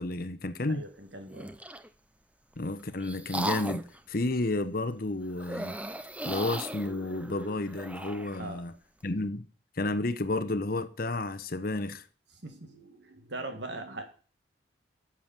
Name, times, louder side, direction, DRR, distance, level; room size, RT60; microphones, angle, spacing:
voice 1, 0.0-0.8 2.6-5.8 6.2-8.7 9.0-9.5 9.8-12.0, left 2 dB, 50° left, 0.9 m, -31 dB
voice 2, 0.7-1.6 8.4-8.6 12.4-14.0, right 2 dB, 65° right, 2.1 m, -41 dB
sound 1, 1.3-1.9 2.6-4.0 5.4-8.4, right 1 dB, 5° right, 0.5 m, -37 dB
9.5 x 7.2 x 7.4 m
head